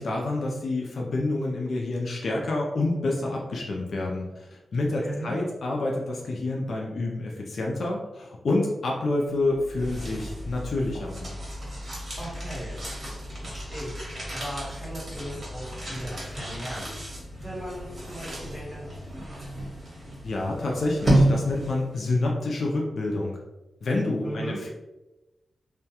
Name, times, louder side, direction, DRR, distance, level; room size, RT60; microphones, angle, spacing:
voice 1, 0.0-11.3 20.2-23.4 23.8-24.7, left 2 dB, 70° left, -1 dB, 0.4 m, -28 dB
voice 2, 5.0-5.3 11.7-11.9 12.2-16.9 17.4-19.4 24.2-24.6, right 1 dB, 10° left, -7 dB, 1.1 m, -38 dB
sound 1, 9.4-22.0, right 1 dB, 45° right, 1.0 m, -31 dB
2.2 x 2.1 x 2.8 m, 1.0 s
wide cardioid pair, 90°, 0 cm